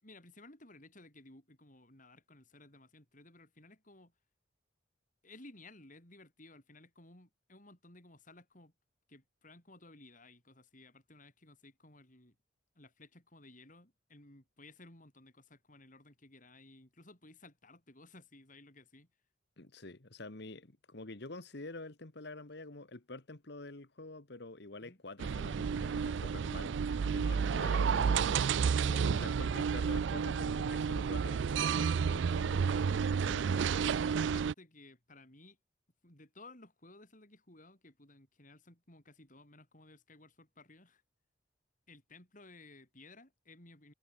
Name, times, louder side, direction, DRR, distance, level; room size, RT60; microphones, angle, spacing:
voice 1, 0.0-4.1 5.2-8.7 9.1-12.4 12.7-19.1 24.8-25.0 34.2-35.6 36.0-41.0 41.9-43.9, left 2 dB, 40° left, 6.0 m, -57 dB
voice 2, 19.6-28.5 28.8-32.8 33.2-34.0, left 2 dB, 60° left, 1.5 m, -47 dB
sound 1, 25.2-34.5, right 6 dB, 65° right, 0.4 m, -31 dB
head